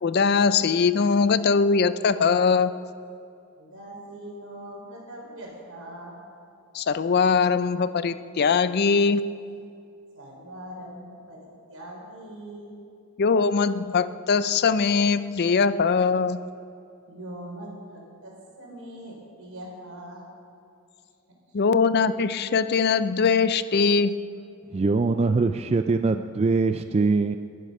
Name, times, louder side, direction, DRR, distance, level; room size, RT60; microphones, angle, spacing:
voice 1, 0.0-2.7 6.7-9.2 13.2-16.4 21.5-24.2, left 5 dB, 50° left, 14 dB, 0.4 m, -21 dB
voice 2, 3.6-6.2 10.1-12.7 17.1-20.3, right 1 dB, 75° right, -1 dB, 4.2 m, -41 dB
voice 3, 24.7-27.4, right 3 dB, 30° right, 8 dB, 0.3 m, -22 dB
21.0 x 10.0 x 5.4 m, 2.4 s
head